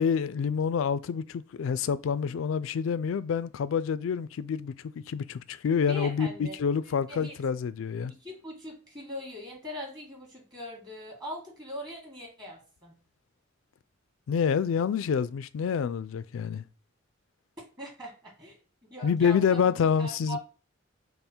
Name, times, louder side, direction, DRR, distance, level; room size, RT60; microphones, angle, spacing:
voice 1, 0.0-8.1 14.3-16.6 19.0-20.4, left 6 dB, 85° left, 0.3 m, -27 dB
voice 2, 5.9-6.6 6.8-7.3 8.1-12.9 17.8-20.4, equal, 20° right, 1.6 m, -41 dB
5.4 x 2.1 x 4.4 m
head